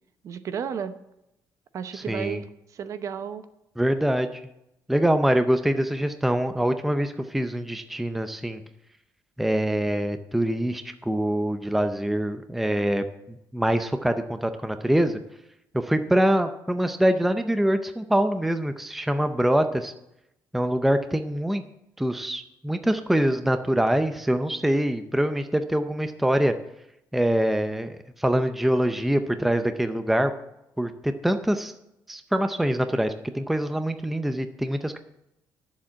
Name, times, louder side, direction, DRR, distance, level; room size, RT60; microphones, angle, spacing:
voice 1, 0.2-1.0 1.7-3.4, right 7 dB, 45° right, 11 dB, 0.8 m, -33 dB
voice 2, 1.9-2.4 3.8-4.4 4.9-8.6 9.4-15.2 15.7-19.9 20.5-21.6 22.0-26.5 27.1-30.3 30.8-31.7 32.1-35.0, right 1 dB, ahead, 8 dB, 0.5 m, -24 dB
11.0 x 7.3 x 7.5 m, 0.84 s
cardioid pair, 175°, 7 cm